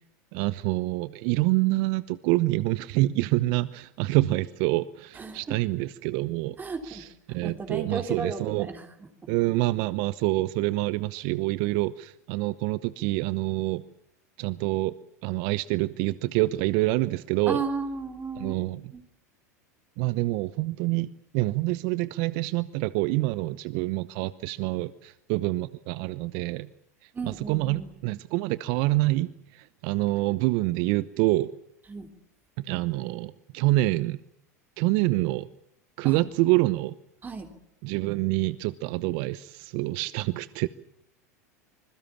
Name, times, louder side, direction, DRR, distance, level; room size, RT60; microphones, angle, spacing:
voice 1, 0.3-6.6 6.8-8.7 9.3-13.8 14.4-14.9 15.2-17.6 18.4-18.9 20.0-26.7 27.0-31.5 32.6-34.2 34.8-35.5 36.0-37.0 37.8-40.7, right 19 dB, 55° right, 17 dB, 0.9 m, -26 dB
voice 2, 5.2-5.6 6.6-8.8 17.5-18.6 18.9-19.0 27.1-27.9 31.9-32.1 36.0-36.2 37.2-37.5, right 4 dB, 20° right, 6 dB, 3.5 m, -34 dB
26.0 x 21.5 x 7.2 m, 0.75 s
hypercardioid pair, 90°, 9 cm